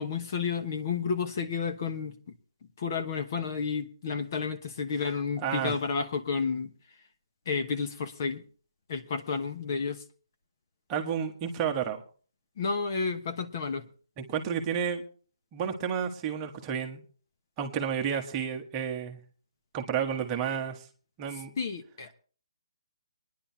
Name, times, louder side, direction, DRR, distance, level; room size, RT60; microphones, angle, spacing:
voice 1, 0.0-2.1 2.8-6.7 7.5-8.4 8.9-10.0 12.6-13.9 21.6-22.1, left 5 dB, 35° left, 8 dB, 1.1 m, -31 dB
voice 2, 5.4-5.8 10.9-12.0 14.2-15.0 15.5-17.0 17.6-19.2 19.7-20.8 21.2-21.5, right 8 dB, 15° right, 4 dB, 1.3 m, -31 dB
26.5 x 10.5 x 2.8 m, 0.41 s
hypercardioid pair, 170°, 3 cm